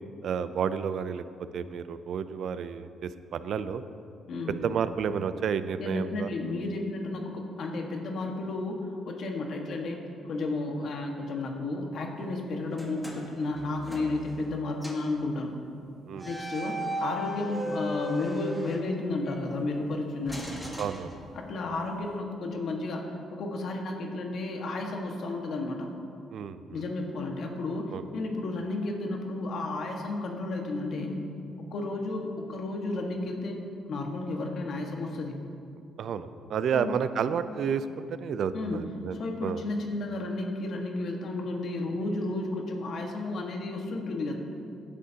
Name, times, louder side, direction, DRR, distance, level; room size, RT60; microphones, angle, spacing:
voice 1, 0.2-1.2 1.5-3.8 4.5-6.3 16.1-16.3 20.8-21.1 26.3-26.8 27.9-28.0 36.0-39.2 39.4-39.6, right 7 dB, 65° right, 12 dB, 0.5 m, -31 dB
voice 2, 4.3-4.6 5.8-15.6 16.2-20.5 21.3-25.9 26.7-31.2 31.7-35.3 36.7-37.0 38.5-38.8 39.2-44.3, left 2 dB, 65° left, 1 dB, 1.6 m, -32 dB
sound 1, 12.7-14.5 14.8-15.1 16.1-19.4 20.2-21.7, equal, 5° left, 2.3 m, -37 dB
16.0 x 10.0 x 2.9 m, 2.4 s
cardioid pair, 90°, 0 cm